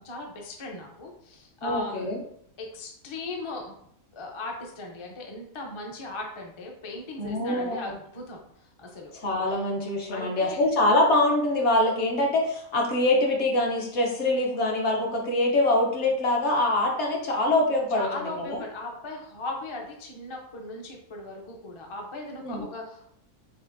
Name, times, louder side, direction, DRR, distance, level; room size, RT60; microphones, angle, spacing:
voice 1, 0.0-2.1 2.6-3.7 4.1-9.1 9.5-9.6 10.1-10.6 17.9-23.1, left 2 dB, 35° left, 0 dB, 0.5 m, -38 dB
voice 2, 1.6-2.2 7.2-7.8 9.2-18.6 22.4-22.7, left 2 dB, 55° left, 0 dB, 1.1 m, -24 dB
6.5 x 2.6 x 2.6 m, 0.70 s
omnidirectional pair, 1.5 m